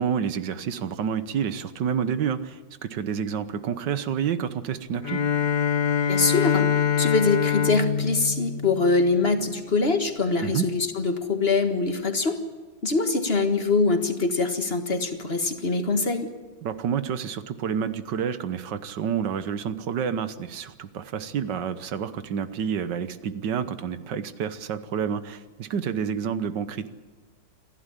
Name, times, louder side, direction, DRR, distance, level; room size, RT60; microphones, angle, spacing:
voice 1, 0.0-5.2 10.4-10.7 16.6-26.9, right 7 dB, 80° right, 13 dB, 1.7 m, -29 dB
Bowed string instrument, 5.0-9.5, left 8 dB, 65° left, 0.4 m, -25 dB
voice 2, 6.1-6.7 7.0-12.4 12.8-16.3, left 3 dB, 35° left, 7 dB, 1.8 m, -23 dB
28.5 x 11.5 x 9.9 m, 1.3 s
omnidirectional pair, 1.9 m